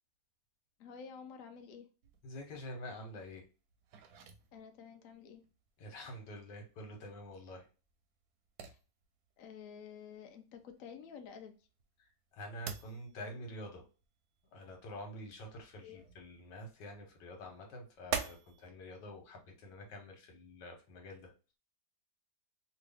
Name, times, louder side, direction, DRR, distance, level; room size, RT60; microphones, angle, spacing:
voice 1, 0.8-1.9 4.5-5.4 8.6-8.8 9.4-11.5 15.8-16.0, left 7 dB, 65° left, 5 dB, 0.9 m, -50 dB
sound 1, 2.0-18.7, right 7 dB, 70° right, 1.0 m, -47 dB
voice 2, 2.2-3.4 5.8-7.6 12.3-13.8 14.5-21.3, left 1 dB, 80° left, 2 dB, 1.7 m, -47 dB
3.0 x 2.7 x 3.3 m, 0.33 s
omnidirectional pair, 1.9 m